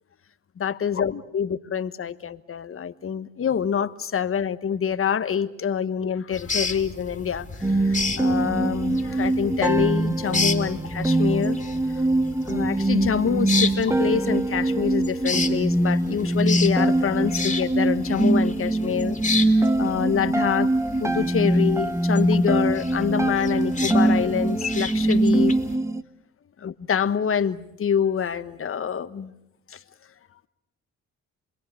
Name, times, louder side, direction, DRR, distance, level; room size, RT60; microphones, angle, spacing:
voice 1, 0.6-11.6 12.5-20.7 21.0-25.5 26.6-29.3 29.7-29.8, left 7 dB, 45° left, 1.3 m, -26 dB
sound 1, 6.3-25.8, left 4 dB, 25° left, 2.8 m, -33 dB
sound 2, 7.6-26.0, right 2 dB, 10° right, 1.1 m, -23 dB
28.5 x 21.5 x 8.5 m
cardioid pair, 90°, 30 cm